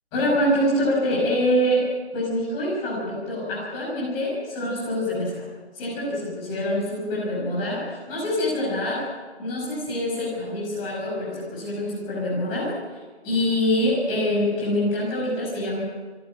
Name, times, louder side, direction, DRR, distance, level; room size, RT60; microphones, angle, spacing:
voice 1, 0.1-1.8 2.1-5.5 5.7-9.0 9.4-12.7 13.2-15.8, left 1 dB, 10° left, -5 dB, 5.6 m, -25 dB
26.5 x 12.0 x 8.7 m, 1.4 s
figure-of-eight pair, 170°, 34 cm